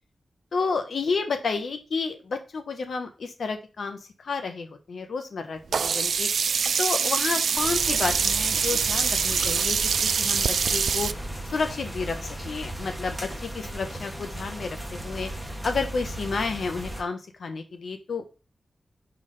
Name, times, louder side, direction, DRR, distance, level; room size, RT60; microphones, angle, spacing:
voice 1, 0.5-6.3 6.8-11.1 11.4-15.3 15.6-18.3, left 4 dB, 65° left, 7 dB, 1.2 m, -31 dB
Sink (filling or washing), 5.7-11.1, right 6 dB, 75° right, 0.3 m, -24 dB
sound 1, 7.6-17.0, right 1 dB, ahead, 1.3 m, -36 dB
5.5 x 4.6 x 5.4 m, 0.32 s
wide cardioid pair, 175°, 0 cm